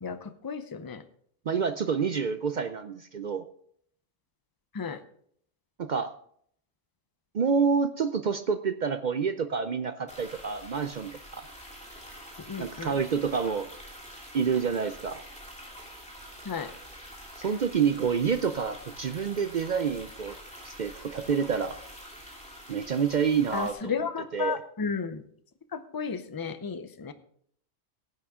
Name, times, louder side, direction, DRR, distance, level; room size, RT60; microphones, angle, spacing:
voice 1, 0.0-1.0 4.7-5.0 12.5-12.9 16.4-16.7 23.5-25.2 25.7-27.1, left 5 dB, 25° left, 10 dB, 0.4 m, -33 dB
voice 2, 1.5-3.4 5.8-6.1 7.3-11.5 12.6-13.7 14.3-15.2 17.4-20.4 20.6-21.8 22.7-24.6, right 6 dB, 65° right, 10 dB, 0.4 m, -28 dB
sound 1, 10.1-23.7, equal, 5° left, 2.9 m, -46 dB
16.0 x 8.6 x 3.6 m, 0.64 s
omnidirectional pair, 1.4 m